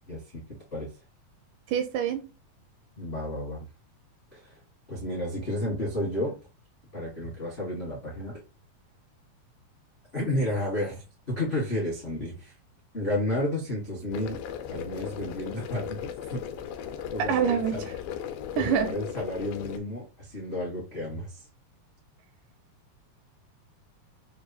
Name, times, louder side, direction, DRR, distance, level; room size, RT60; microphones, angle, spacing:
voice 1, 0.1-0.4 0.7-0.9 3.0-3.7 4.3-4.5 4.9-6.4 6.9-8.4 10.1-12.5 12.9-14.4 14.7-16.4 17.1-17.8 18.5-21.4, left 1 dB, 55° left, 0.6 m, -32 dB
voice 2, 1.7-2.3 17.3-18.0 18.6-19.0, right 8 dB, 80° right, 1.9 m, -26 dB
sound 1, 14.1-19.8, left 9 dB, 80° left, 1.9 m, -37 dB
6.7 x 2.3 x 2.8 m
omnidirectional pair, 4.0 m